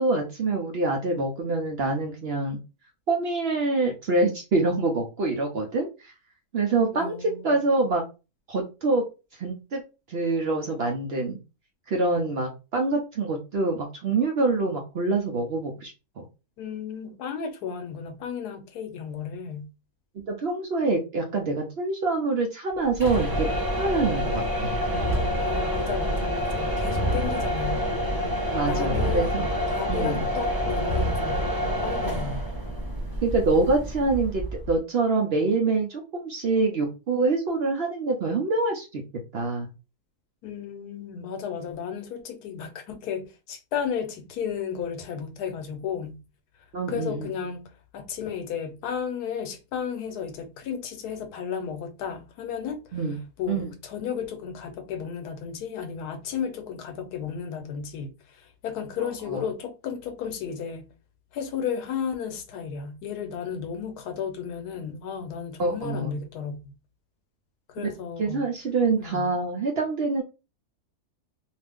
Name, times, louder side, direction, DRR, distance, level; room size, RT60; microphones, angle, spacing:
voice 1, 0.0-2.6 3.1-6.1 6.5-8.0 8.5-9.0 9.4-9.8 10.1-11.4 11.9-15.9 16.2-16.3 20.3-23.5 23.8-24.7 27.1-27.2 28.5-29.4 29.9-30.2 33.2-39.0 39.3-39.7 46.7-47.3 52.9-53.2 53.5-53.7 59.0-59.4 65.6-66.1 68.2-70.2, right 3 dB, 60° right, 0.7 m, -25 dB
voice 2, 6.9-7.6 16.6-19.7 25.4-27.9 28.7-31.5 31.8-32.4 40.4-46.2 46.9-52.8 53.4-60.9 61.3-66.7 67.7-68.5 69.0-69.3, left 7 dB, 85° left, 1.2 m, -33 dB
sound 1, 22.9-34.8, equal, 15° right, 0.8 m, -27 dB
2.7 x 2.4 x 3.4 m
omnidirectional pair, 1.6 m